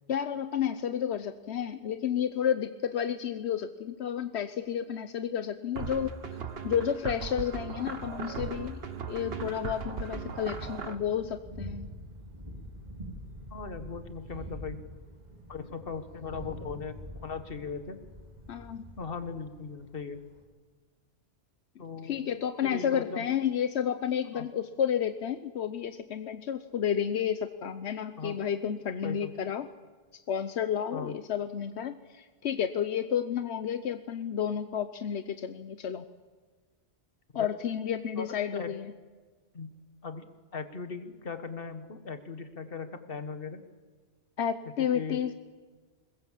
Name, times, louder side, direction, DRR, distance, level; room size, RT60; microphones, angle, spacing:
voice 1, 0.1-6.1 6.6-8.8 9.1-11.9 18.5-18.8 22.0-29.7 30.3-36.1 37.3-38.9 44.4-45.3, left 8 dB, 85° left, 10 dB, 1.1 m, -31 dB
sound 1, 5.8-11.0, right 5 dB, 65° right, 1.5 m, -38 dB
Thunder, 7.1-20.4, equal, 40° right, 3.9 m, -46 dB
voice 2, 13.5-14.8 15.5-17.0 17.2-18.0 19.0-20.2 21.8-22.2 22.6-23.2 24.3-24.5 28.2-28.4 29.0-29.3 30.9-31.2 37.3-37.5 38.2-38.8 39.5-39.7 40.0-40.3 40.5-43.6 44.8-45.2, left 5 dB, 60° left, 9 dB, 1.7 m, -38 dB
22.0 x 20.5 x 7.5 m, 1.4 s
omnidirectional pair, 1.1 m